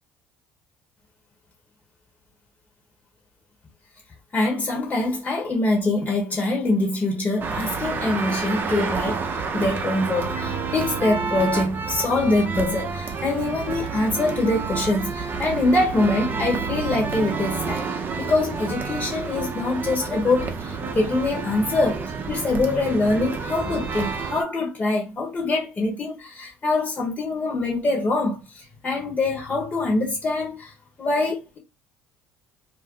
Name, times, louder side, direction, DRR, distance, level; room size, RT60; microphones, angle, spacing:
voice 1, 4.3-30.7 31.0-31.6, left 2 dB, 35° left, 1.1 m, -24 dB
sound 1, 7.4-24.4, right 5 dB, 40° right, 0.6 m, -29 dB
2.5 x 2.1 x 3.7 m
hypercardioid pair, 70°, 6 cm